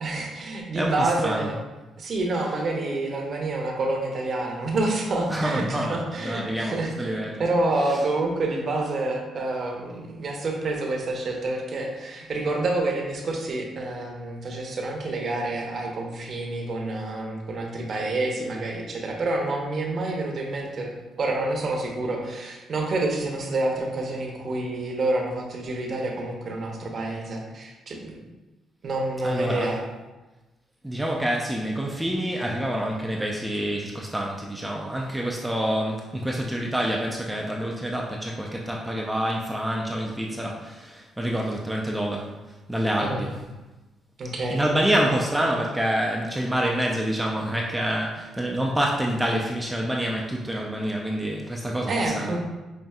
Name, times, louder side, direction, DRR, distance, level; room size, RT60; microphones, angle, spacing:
voice 1, 0.0-1.5 2.0-20.9 21.2-28.2 28.8-29.8 43.0-43.2 44.2-44.6 51.9-52.4, right 2 dB, 50° right, 1 dB, 0.8 m, -28 dB
voice 2, 0.7-1.5 5.3-7.4 7.8-8.0 29.2-29.8 30.8-43.4 44.5-52.4, right 1 dB, 5° right, -2 dB, 0.4 m, -27 dB
5.4 x 2.5 x 2.3 m, 1.1 s
cardioid pair, 90°, 0 cm